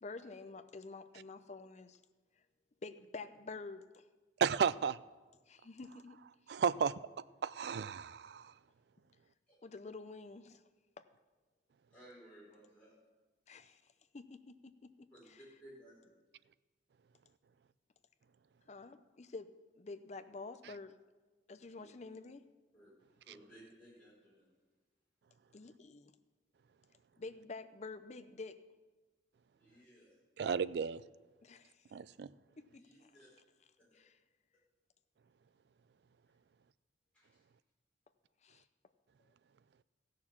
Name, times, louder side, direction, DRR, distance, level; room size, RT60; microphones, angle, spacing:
voice 1, 0.0-2.0 2.8-4.1 5.5-6.2 9.6-10.6 13.5-13.8 14.1-15.4 18.7-20.9 21.5-22.4 25.5-26.1 27.2-28.6 31.4-31.9 32.6-32.8 33.9-34.2 38.4-38.6, left 3 dB, 35° left, 0.5 m, -49 dB
voice 2, 4.4-5.0 6.5-6.9 7.4-8.5 30.4-31.0 31.9-32.3, right 6 dB, 60° right, 0.3 m, -33 dB
voice 3, 11.9-12.9 15.1-15.2 15.6-16.0 21.7-21.9 22.7-24.5 29.5-30.2 32.6-33.3 33.9-34.0 37.1-37.4, right 1 dB, 5° left, 5.0 m, -59 dB
14.5 x 6.6 x 7.2 m
head